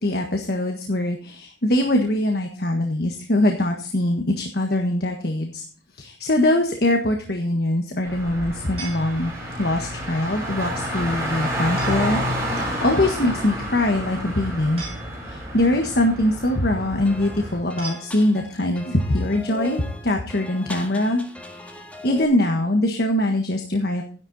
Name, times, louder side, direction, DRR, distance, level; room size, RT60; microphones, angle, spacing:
voice 1, 0.0-5.6 6.0-9.3 9.6-14.8 15.2-24.0, left 1 dB, 60° left, 3 dB, 1.6 m, -23 dB
Car, 8.0-17.6, equal, 15° right, 7.1 m, -29 dB
sound 1, 8.8-9.7 11.8-12.3 14.8-15.6 17.8-18.7, right 4 dB, 30° right, 5.6 m, -41 dB
sound 2, 17.1-22.2, left 1 dB, 10° left, 1.8 m, -39 dB
12.5 x 10.5 x 4.1 m, 0.39 s
head